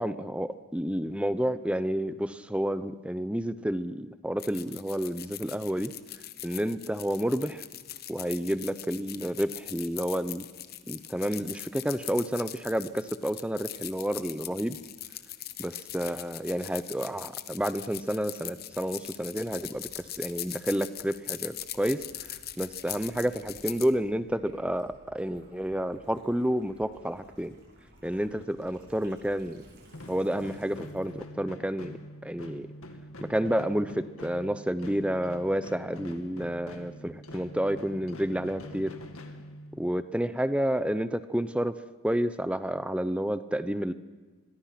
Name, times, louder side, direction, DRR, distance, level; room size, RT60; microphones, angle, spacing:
voice 1, 0.0-5.9 6.4-7.6 8.1-10.4 10.9-14.8 15.6-22.0 22.6-27.5 28.0-29.6 30.1-31.9 32.2-32.7 33.3-38.9 39.8-41.7 42.0-43.9, equal, 5° right, 13 dB, 0.7 m, -30 dB
sound 1, 4.4-23.9, left 13 dB, 45° left, 1.0 m, -41 dB
Gurgling / Liquid, 18.6-31.2, right 1 dB, 50° right, 7.7 m, -57 dB
sound 2, 29.9-40.1, left 1 dB, 80° left, 2.0 m, -45 dB
28.5 x 22.0 x 5.9 m, 1.3 s
head